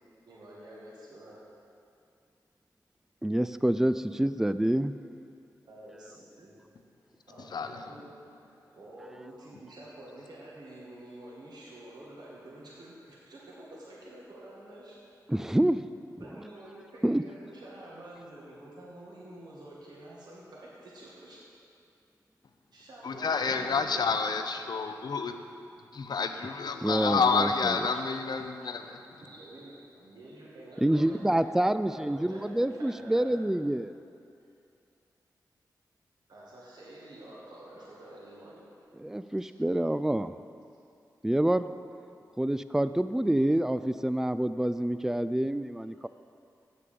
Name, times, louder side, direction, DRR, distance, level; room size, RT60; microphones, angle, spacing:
voice 1, 0.2-1.4 5.6-6.6 7.3-15.0 15.2-15.3 16.2-21.4 22.7-24.2 29.2-33.4 36.3-38.7 39.2-39.5, right 1 dB, 75° right, -6 dB, 2.1 m, -48 dB
voice 2, 3.2-4.9 15.3-15.8 16.2-16.3 17.0-17.2 26.8-27.8 30.8-33.9 39.0-40.3 41.2-41.7 42.4-46.1, right 1 dB, 5° right, 12 dB, 0.3 m, -27 dB
voice 3, 7.5-7.8 23.0-25.3 25.9-29.0, left 5 dB, 70° left, 7 dB, 0.6 m, -29 dB
7.8 x 6.7 x 6.9 m, 2.6 s
cardioid pair, 50°, 7 cm